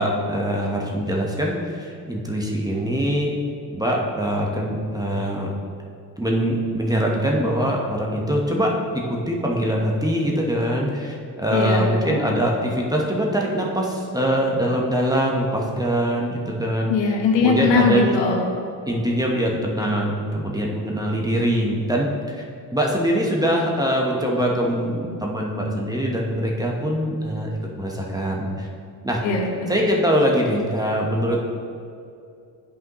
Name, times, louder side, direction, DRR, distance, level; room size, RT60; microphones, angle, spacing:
voice 1, 0.0-3.4 3.7-5.5 6.2-16.9 17.4-18.1 18.9-22.4 22.7-27.5 27.8-28.7 29.0-29.2 29.7-31.4, equal, 10° right, -2 dB, 1.1 m, -23 dB
voice 2, 11.5-12.3 16.9-18.4 29.2-29.8, left 4 dB, 65° left, 0 dB, 1.4 m, -21 dB
9.2 x 5.6 x 3.1 m, 2.5 s
supercardioid pair, 75°, 48 cm